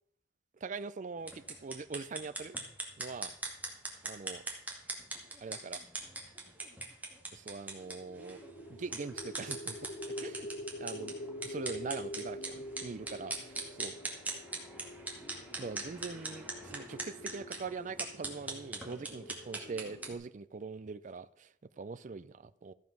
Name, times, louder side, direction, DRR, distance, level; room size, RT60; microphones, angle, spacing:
voice 1, 0.6-2.6 3.0-3.3 4.0-4.4 5.4-5.8 7.3-8.4 8.7-9.9 10.2-10.5 10.8-11.1 11.4-13.9 15.6-22.7, right 4 dB, 40° right, 13 dB, 0.4 m, -42 dB
sound 1, 1.2-20.1, right 2 dB, 10° right, 2.1 m, -42 dB
sound 2, 7.7-15.8, equal, 70° left, 1.8 m, -45 dB
sound 3, 12.9-20.1, left 2 dB, 55° left, 1.8 m, -54 dB
14.0 x 7.4 x 6.0 m, 0.70 s
head